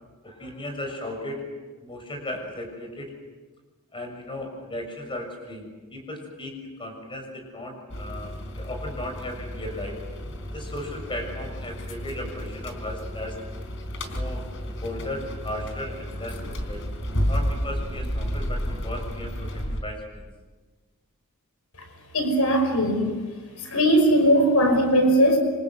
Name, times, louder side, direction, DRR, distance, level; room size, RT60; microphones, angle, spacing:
voice 1, 0.2-1.4 1.8-3.1 3.9-10.0 10.5-13.4 14.1-16.8 17.3-19.5 19.8-20.3, left 1 dB, 25° left, 4 dB, 6.9 m, -36 dB
sound 1, 7.9-19.8, equal, 60° left, 4.1 m, -32 dB
voice 2, 22.1-23.1 23.7-25.4, equal, 80° left, 5 dB, 5.6 m, -19 dB
27.5 x 26.0 x 8.1 m, 1.3 s
head